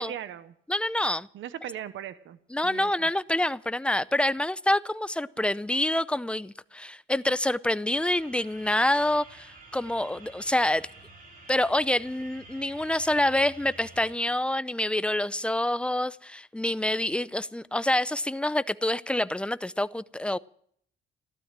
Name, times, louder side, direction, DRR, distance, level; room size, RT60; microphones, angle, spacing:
voice 1, 0.0-0.5 1.3-2.4 2.6-3.1, right 10 dB, 75° right, 1.0 m, -38 dB
voice 2, 0.7-1.3 2.5-10.9 11.5-20.4, left 1 dB, 5° left, 0.6 m, -27 dB
sound 1, 7.9-14.1, right 2 dB, 45° right, 7.6 m, -49 dB
15.0 x 12.5 x 7.4 m
cardioid pair, 90°, 20 cm